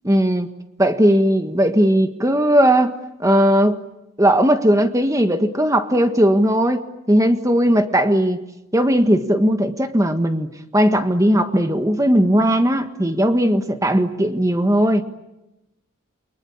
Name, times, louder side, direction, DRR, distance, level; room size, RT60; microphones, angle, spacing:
voice 1, 0.0-0.5 0.8-3.8 4.2-8.4 8.7-15.0, equal, 15° right, 7 dB, 1.5 m, -17 dB
29.5 x 23.5 x 8.5 m, 0.94 s
head